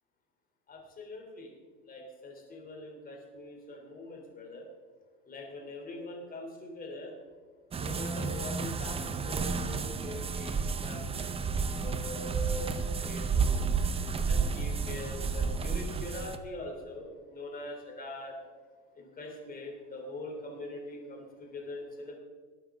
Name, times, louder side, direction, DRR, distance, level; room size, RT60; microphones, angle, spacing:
voice 1, 0.7-1.5 1.8-4.6 5.2-7.1 7.8-13.6 14.2-18.4 18.9-22.2, left 1 dB, 25° left, 1 dB, 3.4 m, -43 dB
sound 1, 7.7-16.4, right 5 dB, 15° right, 0.7 m, -31 dB
20.0 x 8.9 x 3.8 m, 1.5 s
supercardioid pair, 120°, 35 cm